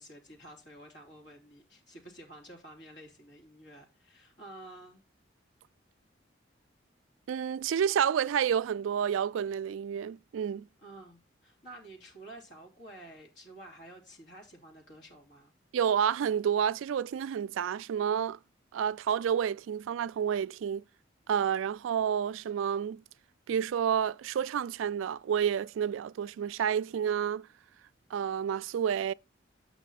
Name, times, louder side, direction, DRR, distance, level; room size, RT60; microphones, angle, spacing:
voice 1, 0.0-5.0 10.8-15.5, right 1 dB, 65° left, 3.0 m, -50 dB
voice 2, 7.3-10.7 15.7-18.4 18.7-20.8 21.3-23.0 23.5-27.5 28.1-29.1, right 8 dB, 85° right, 0.3 m, -29 dB
8.3 x 6.1 x 4.1 m
head